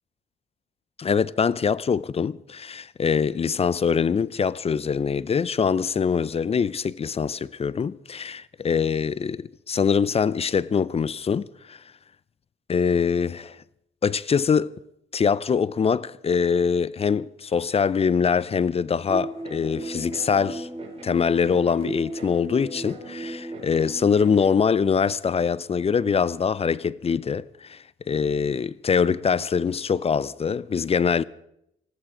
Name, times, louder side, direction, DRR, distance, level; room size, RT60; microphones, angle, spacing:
voice 1, 1.0-11.8 12.7-13.6 14.0-14.7 15.1-20.7 21.0-31.2, left 6 dB, 30° left, 0.5 m, -23 dB
sound 1, 19.1-24.5, right 2 dB, 30° right, 5.4 m, -36 dB
19.5 x 14.0 x 4.9 m
cardioid pair, 90°, 20 cm